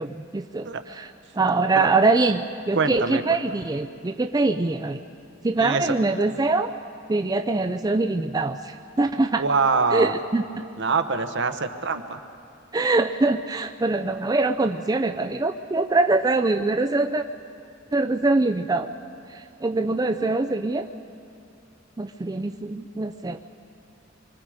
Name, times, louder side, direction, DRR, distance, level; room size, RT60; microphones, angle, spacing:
voice 1, 0.0-5.0 5.4-6.7 7.1-9.4 9.9-10.6 12.7-17.2 17.9-18.9 19.3-20.9 22.0-23.4, right 3 dB, 20° right, 5 dB, 0.4 m, -23 dB
voice 2, 2.7-3.2 5.6-5.9 9.4-10.1 10.8-12.2, right 4 dB, 60° right, 7 dB, 1.0 m, -24 dB
25.5 x 24.0 x 5.0 m, 2.5 s
head